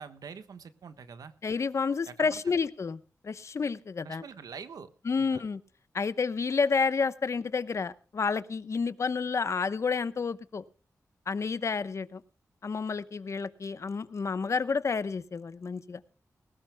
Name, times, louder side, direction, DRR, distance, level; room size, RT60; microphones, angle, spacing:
voice 1, 0.0-1.3 2.1-2.4 4.0-4.9 5.2-5.4, right 6 dB, 90° right, 11 dB, 1.3 m, -45 dB
voice 2, 1.4-4.2 5.0-5.6 5.9-10.6 11.3-12.2 12.6-16.0, left 5 dB, 50° left, 14 dB, 0.9 m, -30 dB
20.0 x 18.5 x 2.2 m, 0.35 s
wide cardioid pair, 110°, 6 cm